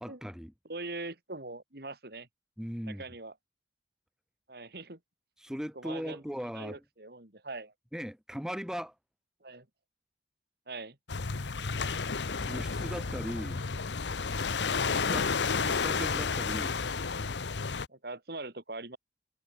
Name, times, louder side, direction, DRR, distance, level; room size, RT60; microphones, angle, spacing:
voice 1, 0.0-0.5 2.6-3.0 5.4-6.8 7.9-8.9 12.5-13.6 14.7-15.3 15.6-16.8, equal, 5° right, 1.8 m, -38 dB
voice 2, 0.7-2.3 2.8-3.3 4.5-5.0 5.7-6.2 6.5-7.7 9.4-9.7 10.7-11.0 17.9-19.0, right 2 dB, 60° right, 3.1 m, -42 dB
sound 1, 11.1-17.9, left 5 dB, 90° left, 0.9 m, -31 dB
head